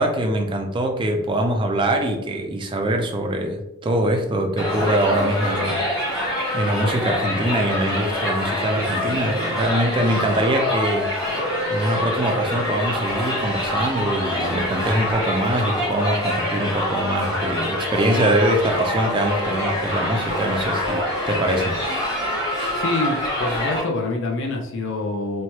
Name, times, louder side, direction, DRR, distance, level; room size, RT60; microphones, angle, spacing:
voice 1, 0.0-5.8 6.5-11.1 11.7-21.8, right 1 dB, 20° right, 3 dB, 0.3 m, -23 dB
Crowd, 4.6-23.8, left 1 dB, 15° left, 1.1 m, -25 dB
voice 2, 22.7-25.4, left 2 dB, 55° left, 1 dB, 0.5 m, -26 dB
3.0 x 2.2 x 2.8 m, 0.91 s
head